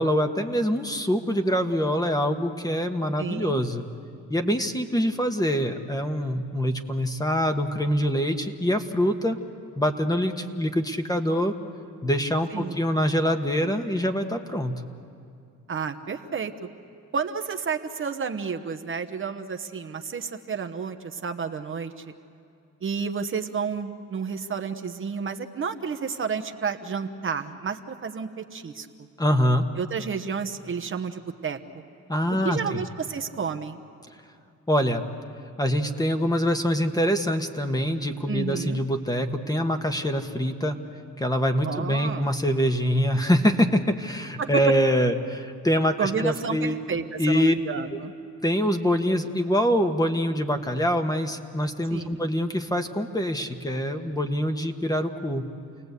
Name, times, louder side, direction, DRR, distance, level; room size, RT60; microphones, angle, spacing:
voice 1, 0.0-3.8 4.3-9.4 9.8-11.5 12.0-14.7 29.2-29.6 32.1-32.8 34.7-35.0 35.6-40.8 41.2-46.8 47.2-47.5 48.4-55.4, equal, 10° left, 5 dB, 1.4 m, -24 dB
voice 2, 3.2-3.6 12.5-12.8 15.7-16.5 17.1-22.0 22.8-28.9 29.8-31.6 32.4-33.8 38.3-38.8 41.6-42.3 44.4-44.5 46.0-48.1 51.9-52.2, right 6 dB, 45° right, 6 dB, 1.1 m, -31 dB
29.0 x 19.0 x 8.3 m, 2.4 s
cardioid pair, 90°, 30 cm